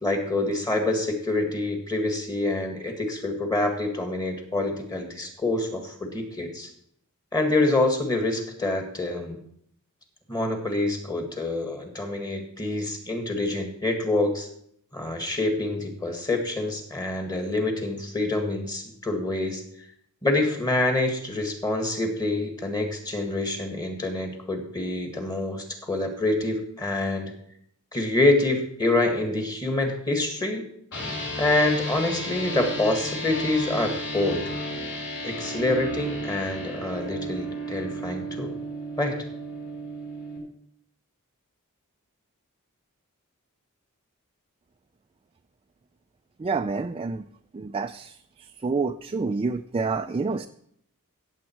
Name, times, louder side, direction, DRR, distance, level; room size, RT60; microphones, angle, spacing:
voice 1, 0.0-6.7 7.3-9.4 10.3-14.5 14.9-19.6 20.2-27.3 27.9-30.6 31.4-34.4 35.2-38.5 39.0-39.2, left 2 dB, 20° left, 4 dB, 1.8 m, -26 dB
sound 1, 30.9-40.4, equal, 55° left, 3.7 m, -33 dB
voice 2, 46.4-47.2 47.5-48.1 48.6-50.5, right 4 dB, 25° right, 7 dB, 0.3 m, -28 dB
16.5 x 7.4 x 4.5 m, 0.69 s
head